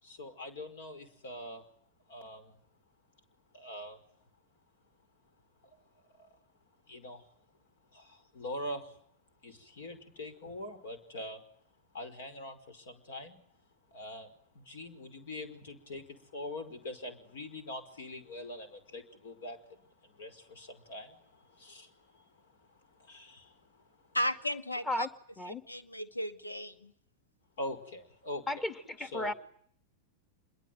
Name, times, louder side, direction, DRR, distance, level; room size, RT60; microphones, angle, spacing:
voice 1, 0.0-1.6 2.1-2.6 3.5-4.0 6.2-6.3 6.9-7.3 7.9-9.0 9.4-11.4 11.9-13.4 13.9-14.3 14.6-23.8 27.6-28.7 29.0-29.3, left 1 dB, 60° left, 5.3 m, -44 dB
voice 2, 24.1-25.1 25.5-26.9, equal, 80° left, 2.3 m, -35 dB
voice 3, 28.5-29.3, left 1 dB, 15° left, 2.5 m, -34 dB
27.0 x 22.5 x 9.4 m
figure-of-eight pair, 90°, 0 cm